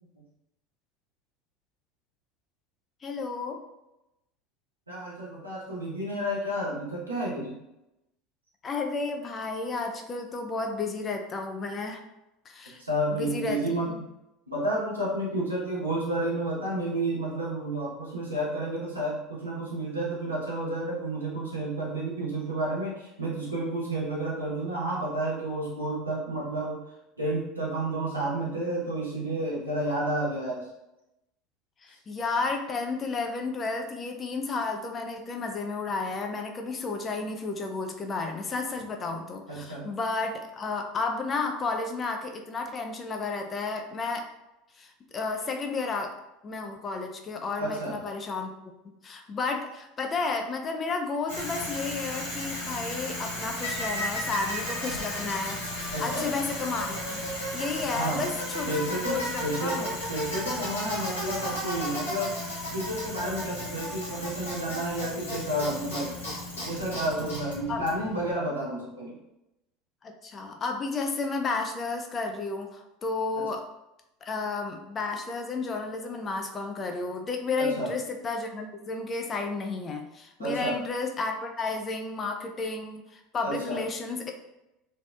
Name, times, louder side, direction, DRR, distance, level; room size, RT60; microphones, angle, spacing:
voice 1, 3.0-3.6 8.6-12.0 12.5-12.8 13.1-14.0 31.8-44.3 44.8-46.2 46.4-48.5 48.8-55.6 56.0-57.2 57.5-58.8 59.1-59.9 67.7-67.8 70.0-73.6 74.2-84.3, left 3 dB, 30° left, 4 dB, 0.4 m, -32 dB
voice 2, 4.9-7.6 12.8-13.9 14.5-26.8 27.2-30.7 39.5-39.9 47.6-48.0 55.9-56.3 57.9-58.2 58.7-62.4 62.7-66.1 66.6-69.2 77.6-77.9 80.4-80.7 83.4-83.8, right 1 dB, 85° right, -6 dB, 0.7 m, -31 dB
Bicycle, 51.3-68.3, left 1 dB, 75° left, 0.7 m, -34 dB
2.7 x 2.0 x 2.3 m, 0.90 s
figure-of-eight pair, 70°, 0 cm